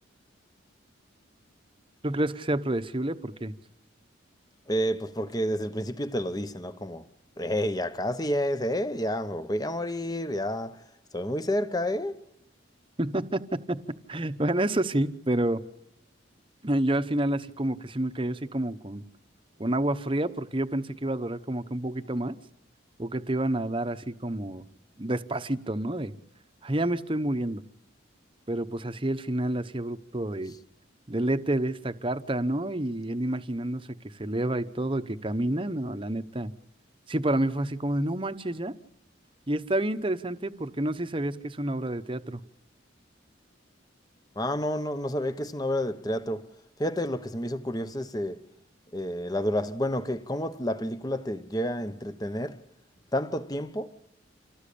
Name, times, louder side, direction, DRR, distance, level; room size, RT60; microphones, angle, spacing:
voice 1, 2.0-3.5 13.0-13.8 14.1-15.6 16.6-19.0 19.6-22.3 23.0-24.6 25.0-26.1 26.6-27.6 28.5-30.5 31.1-36.5 37.1-38.7 39.5-42.4, right 1 dB, 25° right, 1.0 m, -29 dB
voice 2, 4.7-7.1 7.4-10.8 11.1-12.2 44.4-46.5 46.8-48.4 48.9-52.6 53.1-54.0, equal, 20° left, 1.0 m, -30 dB
27.5 x 18.5 x 8.6 m
head